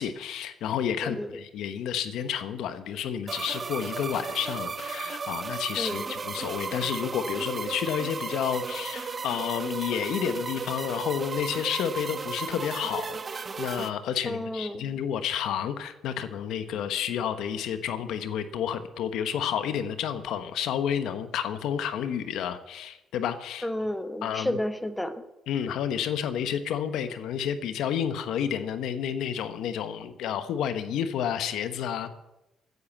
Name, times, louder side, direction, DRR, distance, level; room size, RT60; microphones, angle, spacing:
voice 1, 0.0-23.7 24.2-24.6 25.5-32.1, left 9 dB, 85° left, 10 dB, 1.1 m, -30 dB
sound 1, 3.3-13.9, right 5 dB, 35° right, 0.9 m, -35 dB
voice 2, 14.2-14.9 23.6-25.3, left 1 dB, 10° left, 10 dB, 1.3 m, -31 dB
15.0 x 9.5 x 7.4 m, 0.94 s
cardioid pair, 90°, 0 cm